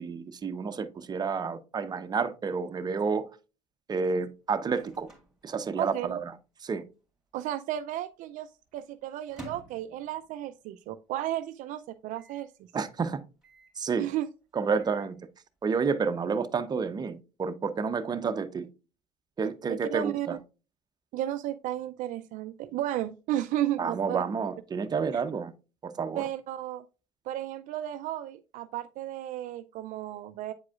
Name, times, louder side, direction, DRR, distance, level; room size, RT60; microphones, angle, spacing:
voice 1, 0.0-3.3 3.9-5.1 5.4-6.3 6.6-6.8 12.7-13.2 13.8-14.1 14.5-15.2 15.6-18.7 19.4-20.4 23.8-25.5 25.8-26.3, right 5 dB, 30° right, 0.7 m, -30 dB
Microwave oven, 4.4-6.3 6.6-6.7 6.9-7.5 8.0-10.7 11.1-11.2 11.4-11.5 12.1-12.5 13.4-13.9 14.5-15.2, right 1 dB, 5° right, 2.3 m, -52 dB
voice 2, 5.8-6.2 7.3-12.5 14.0-14.3 19.7-20.4 21.1-24.2 26.1-26.8 27.3-30.5, right 13 dB, 65° right, 0.4 m, -33 dB
8.4 x 4.8 x 2.4 m
supercardioid pair, 95°, 15 cm